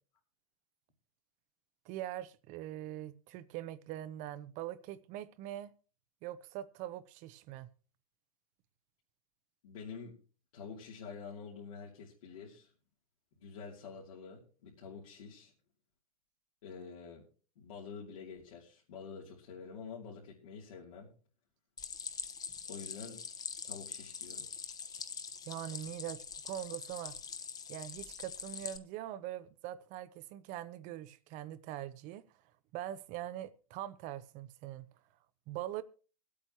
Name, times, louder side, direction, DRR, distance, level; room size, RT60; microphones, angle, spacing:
voice 1, 1.8-5.7 6.2-7.7 25.5-27.2 27.7-32.2 32.7-34.9 35.5-35.8, right 13 dB, 45° right, 0.8 m, -42 dB
voice 2, 9.6-10.2 10.5-12.7 13.4-15.5 16.6-17.2 17.6-21.1 22.7-23.2 23.6-24.5, left 5 dB, 80° left, 3.0 m, -47 dB
Stream, 21.8-28.8, left 6 dB, 20° left, 1.0 m, -44 dB
24.5 x 8.5 x 3.0 m
hypercardioid pair, 120°, 18 cm